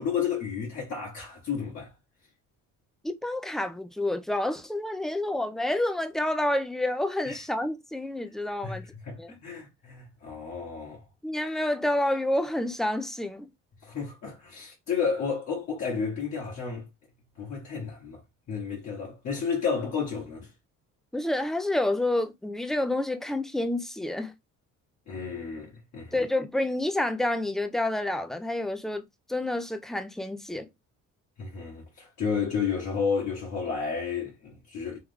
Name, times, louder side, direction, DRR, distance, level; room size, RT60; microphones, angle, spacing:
voice 1, 0.0-1.9 7.3-7.4 8.6-11.0 13.8-16.9 17.4-18.2 18.5-20.5 25.1-26.2 31.4-35.0, left 6 dB, 55° left, 1.6 m, -32 dB
voice 2, 3.0-8.8 9.2-9.4 11.2-13.5 21.1-24.3 26.1-30.7, left 1 dB, ahead, 0.5 m, -29 dB
3.5 x 3.3 x 3.5 m
cardioid pair, 120°, 32 cm